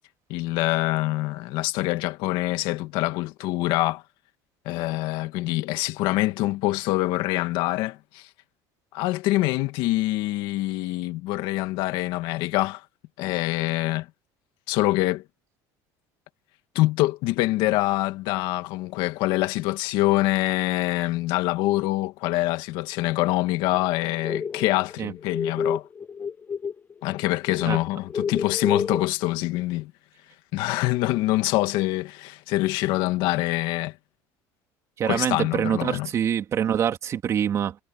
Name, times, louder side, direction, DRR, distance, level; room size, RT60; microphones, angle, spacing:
voice 1, 0.3-4.0 4.7-8.3 8.9-12.8 13.2-14.1 14.7-15.2 16.8-25.8 27.0-29.9 30.5-33.9 35.0-36.1, left 18 dB, 70° left, 2.0 m, -25 dB
sound 1, 23.8-26.9 27.2-29.0, left 6 dB, 20° left, 0.6 m, -29 dB
voice 2, 35.0-37.8, right 9 dB, 35° right, 2.6 m, -25 dB
cardioid pair, 140°, 8 cm